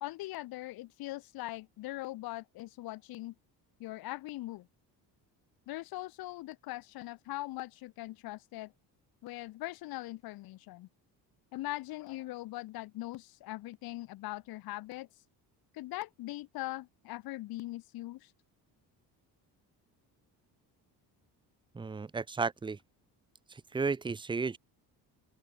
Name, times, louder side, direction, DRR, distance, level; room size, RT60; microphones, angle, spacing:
voice 1, 0.0-3.3 3.8-4.7 5.7-8.7 9.2-10.9 11.5-15.1 15.7-18.3, left 18 dB, 65° left, 0.9 m, -41 dB
voice 2, 21.7-22.8 23.5-24.6, right 4 dB, 10° right, 0.7 m, -33 dB
open air
cardioid pair, 160°, 40 cm